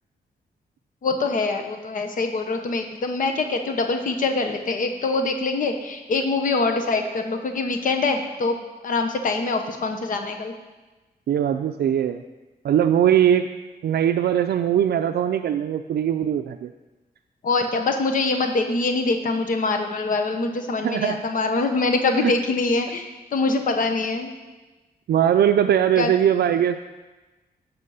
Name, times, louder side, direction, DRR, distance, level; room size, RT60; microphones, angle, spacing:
voice 1, 1.0-8.6 8.8-10.5 17.4-24.3 26.0-26.1, left 3 dB, 50° left, 5 dB, 0.9 m, -24 dB
voice 2, 11.3-12.2 12.6-13.5 13.8-16.7 20.8-21.2 22.2-22.3 25.1-26.9, right 9 dB, 70° right, 7 dB, 0.4 m, -20 dB
16.5 x 6.2 x 5.5 m, 1.2 s
wide cardioid pair, 180°, 17 cm